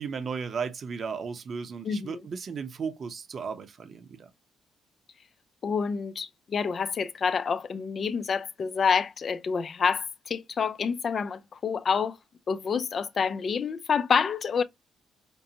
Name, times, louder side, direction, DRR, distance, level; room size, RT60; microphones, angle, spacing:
voice 1, 0.0-4.3, right 5 dB, 50° right, 0.8 m, -35 dB
voice 2, 1.8-2.2 5.6-12.2 12.5-14.6, left 6 dB, 50° left, 0.4 m, -28 dB
5.2 x 2.1 x 2.8 m
cardioid pair, 90°, 0 cm